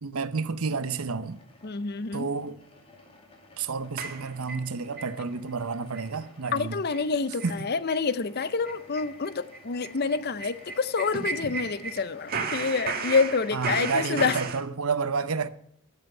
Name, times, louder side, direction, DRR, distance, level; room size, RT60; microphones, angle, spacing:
voice 1, 0.0-1.4 2.1-2.6 3.6-6.8 7.4-7.6 13.5-15.5, right 4 dB, 80° right, 0.8 m, -30 dB
sound 1, 0.7-14.4, left 2 dB, 25° left, 2.4 m, -53 dB
voice 2, 1.6-2.3 6.5-14.4, left 4 dB, 50° left, 0.6 m, -27 dB
sound 2, 4.0-5.1 5.5-5.6 5.9-6.2 6.5-6.6 6.9-7.1 7.4-7.6 7.9-8.0 8.4-12.0 12.3-14.6, right 4 dB, 45° right, 1.5 m, -34 dB
13.5 x 7.4 x 7.7 m
head